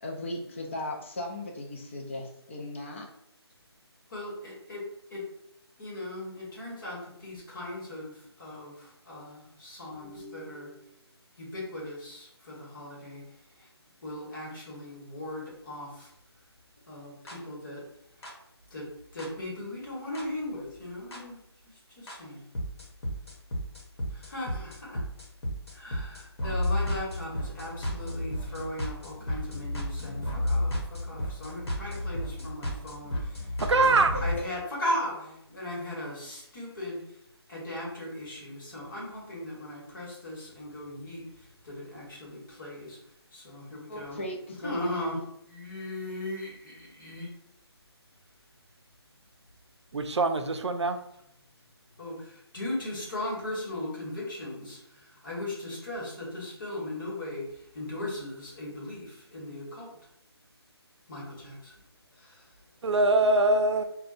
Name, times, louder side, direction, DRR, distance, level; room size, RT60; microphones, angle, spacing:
voice 1, 0.0-3.1 34.1-34.5 43.9-44.8, left 1 dB, 30° left, 0.5 m, -37 dB
voice 2, 4.1-4.8 5.1-5.2 5.8-11.0 11.4-13.3 13.6-13.7 14.0-16.1 16.9-17.9 18.2-18.3 18.7-22.4 24.1-25.0 25.7-37.2 37.5-43.0 43.3-44.2 44.6-45.2 45.5-47.3 52.0-60.0 61.1-61.8 62.1-62.5, left 1 dB, 50° left, 1.2 m, -38 dB
sound 1, 17.3-17.4 18.2-18.3 19.2-19.3 20.2-20.3 21.1-21.2 22.1-22.2 22.6-34.4, left 1 dB, 70° left, 1.0 m, -33 dB
voice 3, 33.6-34.2 49.9-51.0 62.8-63.8, right 2 dB, 85° right, 0.4 m, -23 dB
3.4 x 2.2 x 2.4 m
figure-of-eight pair, 165°, 14 cm